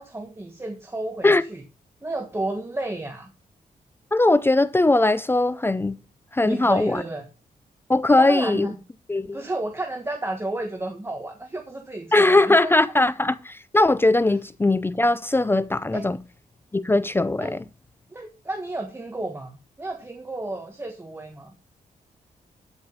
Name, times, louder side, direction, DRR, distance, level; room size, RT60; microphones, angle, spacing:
voice 1, 0.0-1.6 2.0-3.3 6.4-7.2 8.2-8.8 9.3-12.6 15.9-16.0 17.4-17.5 18.1-21.5, right 2 dB, 15° right, 1.4 m, -31 dB
voice 2, 4.1-6.0 6.3-7.0 7.9-8.7 9.1-9.4 12.1-16.2 16.7-17.6, left 2 dB, 15° left, 0.4 m, -20 dB
12.5 x 5.1 x 5.4 m
wide cardioid pair, 120°, 14 cm